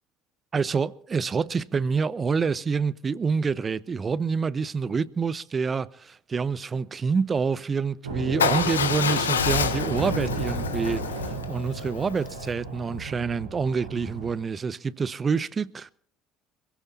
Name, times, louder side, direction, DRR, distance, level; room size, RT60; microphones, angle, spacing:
voice 1, 0.5-11.0 11.5-15.9, right 5 dB, 30° right, 0.8 m, -27 dB
sound 1, 8.0-14.3, right 4 dB, 85° right, 4.1 m, -34 dB
Motorcycle / Engine starting / Idling, 8.4-12.5, left 6 dB, 80° left, 1.1 m, -28 dB
27.0 x 16.0 x 2.8 m
figure-of-eight pair, 60°, 0 cm